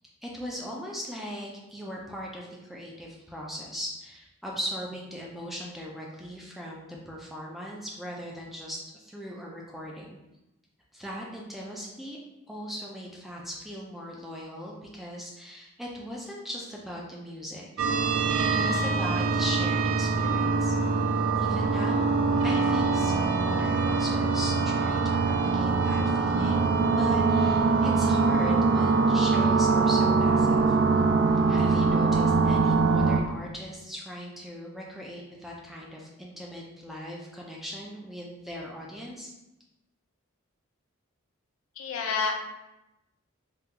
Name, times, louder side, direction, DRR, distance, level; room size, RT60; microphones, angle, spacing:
voice 1, 0.2-10.2 10.9-12.2 12.5-17.7 17.9-20.7 21.4-22.1 22.4-26.7 27.0-30.8 31.5-39.3, equal, ahead, -3 dB, 0.3 m, -39 dB
sound 1, 17.8-33.2, right 4 dB, 80° right, 0.4 m, -23 dB
voice 2, 41.8-42.3, left 5 dB, 75° left, 3 dB, 0.4 m, -28 dB
3.6 x 2.3 x 2.8 m, 0.94 s
head